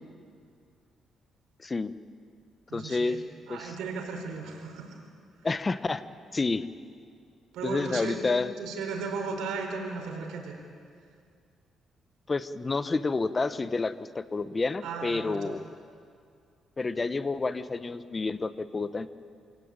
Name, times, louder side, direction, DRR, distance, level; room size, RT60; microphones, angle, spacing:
voice 1, 1.6-1.9 2.7-3.2 3.5-3.8 5.4-6.0 6.3-6.7 7.6-8.5 12.3-15.6 16.8-19.1, left 3 dB, 25° left, 13 dB, 1.0 m, -29 dB
voice 2, 2.7-3.2 3.5-5.0 7.5-10.6 14.8-15.5, right 4 dB, 85° right, 3 dB, 4.4 m, -36 dB
27.0 x 17.5 x 8.9 m, 2.3 s
cardioid pair, 90°, 0 cm